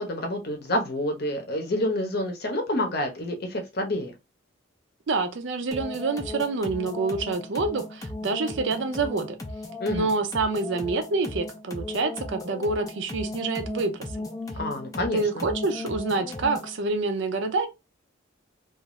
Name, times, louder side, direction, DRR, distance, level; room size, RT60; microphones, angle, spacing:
voice 1, 0.0-4.1 9.8-10.1 14.5-15.4, left 1 dB, 50° left, 0.7 m, -28 dB
voice 2, 5.1-9.4 9.9-14.3 15.1-17.7, right 3 dB, 60° right, 0.5 m, -27 dB
sound 1, 5.7-16.8, left 2 dB, 15° left, 0.4 m, -36 dB
2.5 x 2.4 x 3.0 m
head